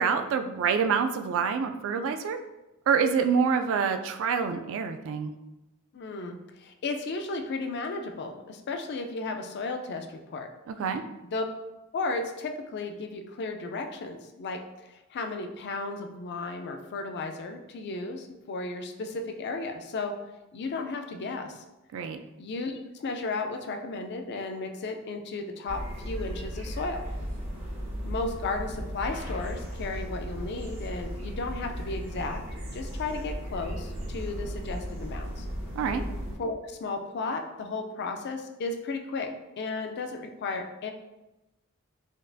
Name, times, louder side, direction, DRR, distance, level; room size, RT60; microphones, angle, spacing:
voice 1, 0.0-2.4 2.9-5.3 10.7-11.0 21.9-22.2 35.8-36.0, right 6 dB, 65° right, 8 dB, 0.3 m, -26 dB
voice 2, 5.9-10.5 11.2-11.4 11.9-20.1 20.5-21.6 22.4-27.0 28.0-32.4 32.7-35.5 36.4-40.9, left 3 dB, 50° left, 5 dB, 0.4 m, -34 dB
sound 1, 25.7-36.4, equal, 85° right, 1.3 m, -36 dB
5.1 x 2.4 x 2.5 m, 1.0 s
head